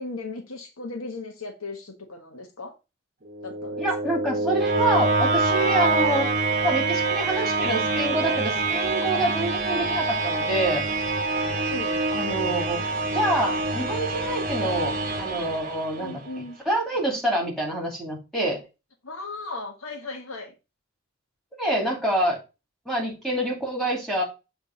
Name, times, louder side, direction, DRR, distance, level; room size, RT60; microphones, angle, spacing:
voice 1, 0.0-2.7 3.4-4.2 11.4-12.0 16.0-16.6 19.0-20.5, left 3 dB, 80° left, 1.3 m, -37 dB
sound 1, 3.3-16.3, right 3 dB, 40° right, 1.2 m, -25 dB
voice 2, 3.8-6.3 6.6-10.8 12.1-12.8 13.1-18.6 21.6-22.4 22.9-24.2, right 1 dB, ahead, 2.5 m, -27 dB
7.5 x 3.5 x 5.1 m
head